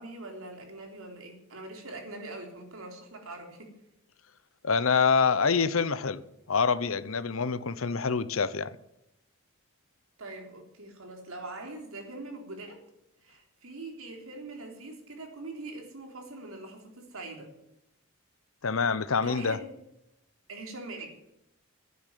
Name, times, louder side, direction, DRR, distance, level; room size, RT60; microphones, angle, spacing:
voice 1, 0.0-3.7 10.2-12.8 13.2-17.5 19.1-19.7 20.5-21.1, right 2 dB, 85° right, 3.7 m, -42 dB
voice 2, 4.6-6.2 6.5-8.8 18.6-19.6, left 5 dB, 80° left, 0.8 m, -26 dB
12.0 x 9.6 x 9.3 m
head